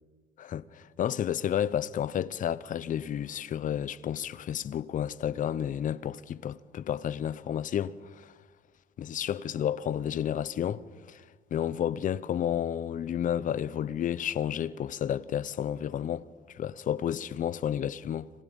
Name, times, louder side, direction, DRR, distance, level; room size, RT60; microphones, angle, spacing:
voice 1, 0.4-8.3 9.0-11.2 11.5-18.3, left 10 dB, 50° left, 0.9 m, -31 dB
30.0 x 26.5 x 5.4 m
cardioid pair, 110°, 17 cm